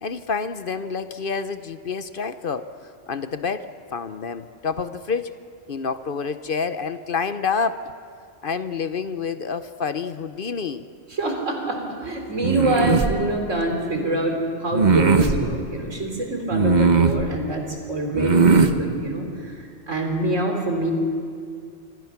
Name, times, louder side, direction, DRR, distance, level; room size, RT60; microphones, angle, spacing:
voice 1, 0.0-2.7 3.1-5.3 5.7-7.9 8.4-10.9, left 5 dB, 50° left, 11 dB, 0.9 m, -28 dB
voice 2, 11.1-20.9, right 1 dB, 90° right, 2 dB, 4.2 m, -25 dB
sound 1, 12.4-13.1 14.7-15.4 16.5-17.2 18.1-18.8, right 4 dB, 40° right, 1.2 m, -18 dB
26.5 x 24.5 x 5.9 m, 2.2 s
omnidirectional pair, 1.3 m